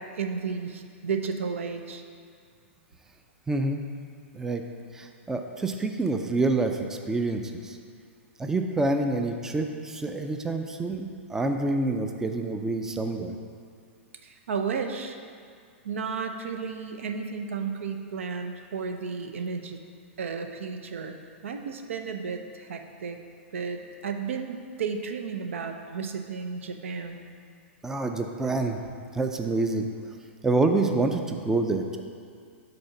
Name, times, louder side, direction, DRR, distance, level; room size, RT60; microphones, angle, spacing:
voice 1, 0.0-2.0 14.2-15.2 15.8-19.8 20.2-21.1 21.4-23.2 23.5-27.2, right 5 dB, 80° right, 6 dB, 0.6 m, -33 dB
voice 2, 3.5-3.8 4.3-4.6 4.9-7.8 8.4-13.4 27.8-28.8 29.1-29.9 30.4-32.0, right 2 dB, 5° right, 5 dB, 0.4 m, -27 dB
5.3 x 4.2 x 5.9 m, 2.2 s
hypercardioid pair, 130°, 7 cm